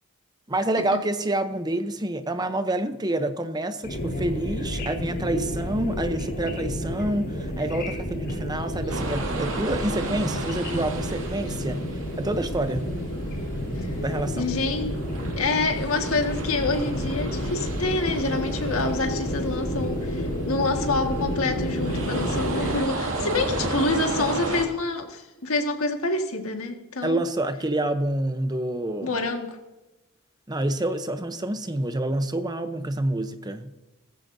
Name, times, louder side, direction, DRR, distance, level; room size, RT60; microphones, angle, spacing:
voice 1, 0.5-12.9 13.6-14.6 27.0-29.2 30.5-33.7, right 1 dB, 20° right, 0.8 m, -28 dB
sound 1, 3.8-22.8, equal, 50° left, 4.0 m, -30 dB
sound 2, 8.9-24.7, right 2 dB, 70° right, 2.2 m, -34 dB
voice 2, 14.4-14.9 15.3-27.2 29.0-29.6, left 3 dB, 80° left, 1.8 m, -27 dB
16.5 x 15.0 x 2.7 m
head